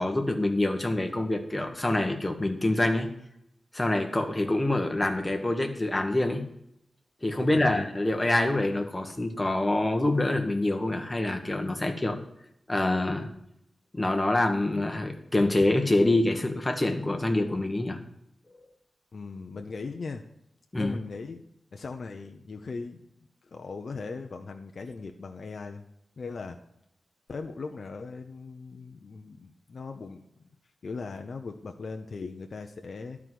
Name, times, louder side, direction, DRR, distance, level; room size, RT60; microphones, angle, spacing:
voice 1, 0.0-3.1 3.7-6.5 7.2-12.2 12.7-13.3 13.9-18.0 20.7-21.0, left 2 dB, 20° left, 4 dB, 1.4 m, -26 dB
voice 2, 7.4-7.8 19.1-20.3 20.8-21.4 21.7-23.0 23.5-25.8 26.2-26.6 27.3-30.2 30.8-33.2, left 4 dB, 60° left, 4 dB, 0.7 m, -39 dB
12.0 x 4.8 x 7.6 m, 0.77 s
wide cardioid pair, 100°, 0 cm